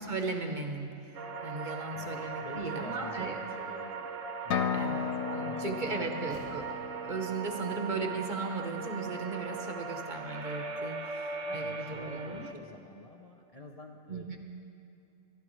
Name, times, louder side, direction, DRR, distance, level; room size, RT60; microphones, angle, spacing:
voice 1, 0.0-3.4 4.7-6.7 7.0-12.5 14.1-14.4, right 3 dB, 40° right, 4 dB, 1.0 m, -37 dB
sound 1, 1.1-12.5, right 5 dB, 70° right, 1.2 m, -39 dB
voice 2, 1.5-4.1 4.4-6.1 11.4-14.4, left 2 dB, 35° left, 0 dB, 0.6 m, -49 dB
sound 2, 4.5-8.3, left 7 dB, 80° left, 1.1 m, -35 dB
Slam, 5.1-5.2 5.6-7.4, equal, 60° left, 2.1 m, -53 dB
25.5 x 12.0 x 3.1 m, 2.6 s
omnidirectional pair, 1.4 m